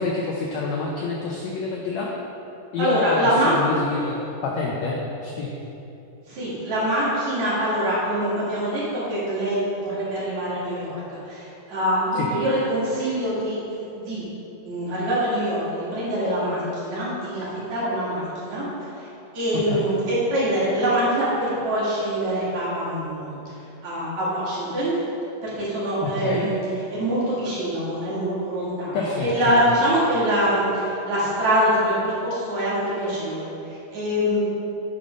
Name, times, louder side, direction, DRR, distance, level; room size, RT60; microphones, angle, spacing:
voice 1, 0.0-2.1 2.7-4.2 4.4-5.5 12.1-12.3 19.5-19.9 26.0-26.5 28.9-29.6, left 4 dB, 80° left, -2 dB, 1.6 m, -27 dB
voice 2, 2.8-3.5 6.3-14.2 14.6-18.7 18.9-19.1 19.3-23.6 23.8-24.9 25.4-26.6 26.9-34.4, equal, 60° right, -9 dB, 3.4 m, -24 dB
8.5 x 5.4 x 5.2 m, 2.8 s
omnidirectional pair, 3.9 m